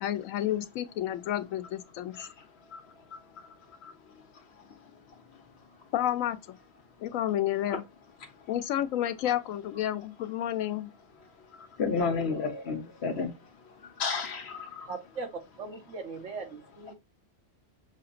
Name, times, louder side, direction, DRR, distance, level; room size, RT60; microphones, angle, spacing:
voice 1, 0.0-2.3 5.9-6.6 7.0-7.8 8.5-10.9, left 12 dB, 90° left, 1.0 m, -30 dB
voice 2, 11.6-13.3 14.0-14.9, left 5 dB, 55° left, 1.2 m, -31 dB
voice 3, 14.9-15.3 15.6-16.9, right 4 dB, 70° right, 1.5 m, -39 dB
6.4 x 2.8 x 2.4 m
omnidirectional pair, 1.3 m